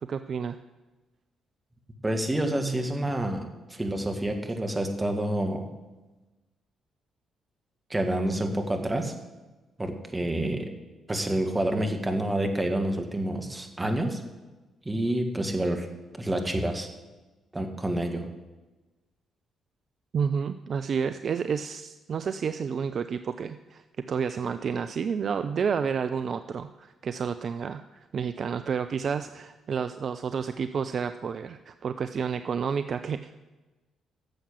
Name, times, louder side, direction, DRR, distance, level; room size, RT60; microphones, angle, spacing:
voice 1, 0.0-0.6 20.1-33.4, right 6 dB, 50° right, 10 dB, 0.4 m, -30 dB
voice 2, 2.0-5.7 7.9-9.1 9.8-10.7 11.1-14.2 14.9-15.9 16.2-16.9 17.5-18.3, right 1 dB, 20° right, 4 dB, 1.9 m, -28 dB
10.5 x 7.2 x 7.2 m, 1.2 s
figure-of-eight pair, 40°, 0 cm